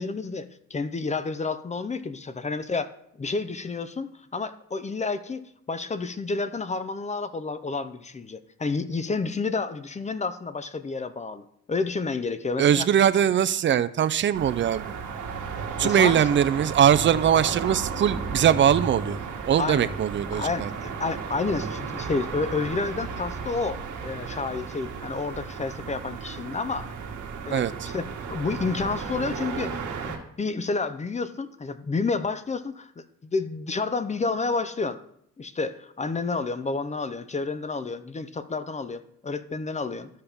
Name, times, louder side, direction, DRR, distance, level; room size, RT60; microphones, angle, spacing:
voice 1, 0.0-2.9 3.2-5.4 5.7-12.9 13.7-13.8 15.8-16.3 19.6-20.0 20.3-26.9 27.4-29.8 30.0-33.1 33.3-35.0 35.4-40.1, left 4 dB, 25° left, 12 dB, 0.6 m, -30 dB
voice 2, 12.6-14.8 15.8-19.2 19.5-20.7 27.5-27.7, right 9 dB, 40° right, 14 dB, 0.5 m, -21 dB
sound 1, 14.3-30.2, right 5 dB, 75° right, 1.5 m, -34 dB
13.0 x 5.5 x 3.5 m, 0.71 s
cardioid pair, 90°, 30 cm